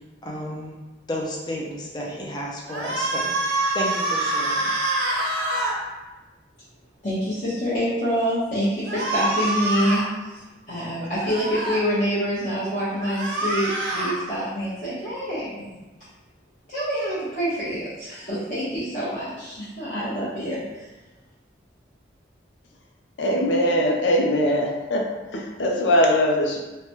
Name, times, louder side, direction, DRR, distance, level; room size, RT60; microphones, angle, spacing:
voice 1, 0.2-0.7 1.1-3.3 3.7-4.6, equal, 25° left, -2 dB, 0.4 m, -31 dB
sound 1, 2.7-5.7 8.9-10.1 11.2-11.8 12.9-14.2, right 2 dB, 85° right, 0.6 m, -25 dB
voice 2, 7.0-10.3 10.7-15.7 16.7-20.9, equal, 45° left, -14 dB, 0.9 m, -26 dB
voice 3, 23.2-25.1 25.3-26.6, equal, 90° left, 0 dB, 0.5 m, -21 dB
3.2 x 2.1 x 2.8 m, 1.1 s
head